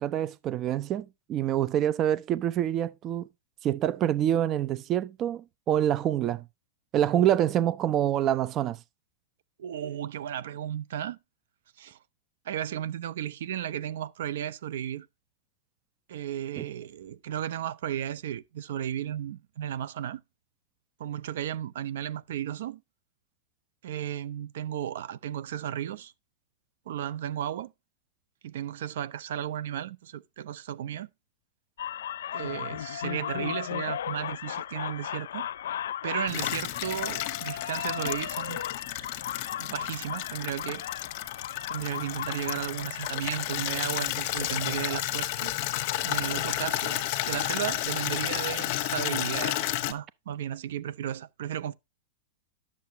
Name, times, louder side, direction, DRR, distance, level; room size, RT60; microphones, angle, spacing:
voice 1, 0.0-3.3 3.6-6.4 6.9-8.8 16.6-16.7, right 11 dB, 25° right, 0.4 m, -26 dB
voice 2, 9.6-11.2 11.8-12.0 12.4-15.1 16.1-20.2 21.0-22.8 23.8-26.1 26.9-27.7 28.4-31.1 32.3-35.5 36.0-38.6 39.6-40.8 41.7-45.5 46.0-51.7, right 10 dB, 70° right, 0.6 m, -34 dB
sound 1, 31.8-43.8, left 10 dB, 85° left, 0.5 m, -36 dB
Water tap faucet / Liquid, 36.3-49.9, left 15 dB, 40° left, 1.1 m, -32 dB
10.5 x 7.2 x 2.7 m
supercardioid pair, 160°, 0 cm